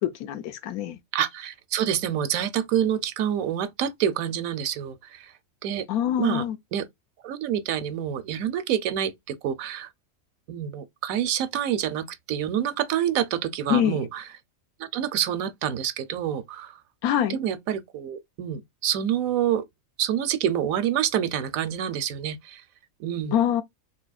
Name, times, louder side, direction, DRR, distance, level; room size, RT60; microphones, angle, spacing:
voice 1, 0.0-1.0 5.9-6.6 13.7-14.0 17.0-17.4 23.3-23.6, left 10 dB, 80° left, 1.1 m, -24 dB
voice 2, 1.1-5.3 5.6-5.9 6.2-6.4 6.7-6.9 7.2-9.9 10.5-14.2 14.8-16.8 17.3-19.7 20.0-22.6 23.0-23.4, right 10 dB, 75° right, 1.0 m, -27 dB
4.1 x 2.7 x 2.2 m
omnidirectional pair, 1.5 m